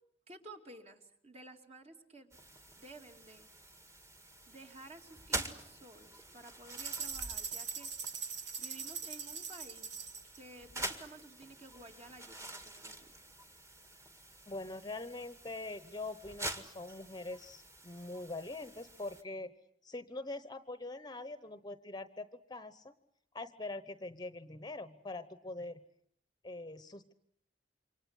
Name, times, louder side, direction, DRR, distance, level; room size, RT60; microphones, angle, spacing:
voice 1, 0.3-2.4 2.8-3.5 4.5-7.9 8.2-9.9 10.2-13.1, right 2 dB, 35° right, 4 dB, 2.7 m, -53 dB
sound 1, 2.3-19.2, right 1 dB, 15° right, 1.9 m, -47 dB
sound 2, 6.7-10.4, right 6 dB, 85° right, 2.6 m, -41 dB
voice 2, 14.5-19.5 19.8-22.9 23.3-25.8 26.4-27.1, left 2 dB, 25° left, 12 dB, 1.0 m, -43 dB
28.0 x 24.5 x 8.2 m, 0.67 s
head